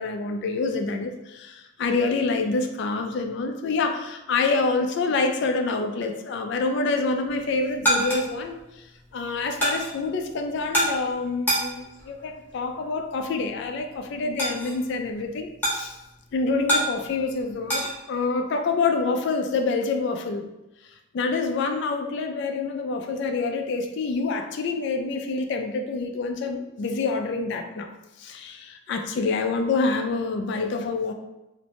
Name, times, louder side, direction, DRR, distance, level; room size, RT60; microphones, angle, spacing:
voice 1, 0.0-8.5 9.1-16.0 16.3-20.5 21.1-27.9 28.2-31.1, left 3 dB, 55° left, 5 dB, 0.3 m, -27 dB
sound 1, 7.3-17.9, right 1 dB, 10° left, 0.7 m, -30 dB
2.5 x 2.1 x 2.8 m, 0.97 s
head